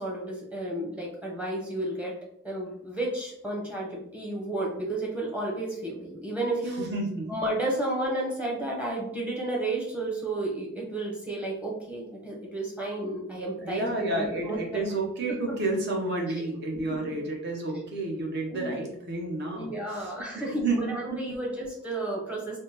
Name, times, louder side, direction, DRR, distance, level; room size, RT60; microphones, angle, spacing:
voice 1, 0.0-2.1 2.4-6.8 7.3-14.9 18.5-18.8 19.5-22.6, right 2 dB, 5° right, -3 dB, 0.7 m, -32 dB
voice 2, 6.8-7.3 13.3-21.4, right 2 dB, 55° right, 0 dB, 0.8 m, -31 dB
3.4 x 2.1 x 2.9 m, 0.72 s
head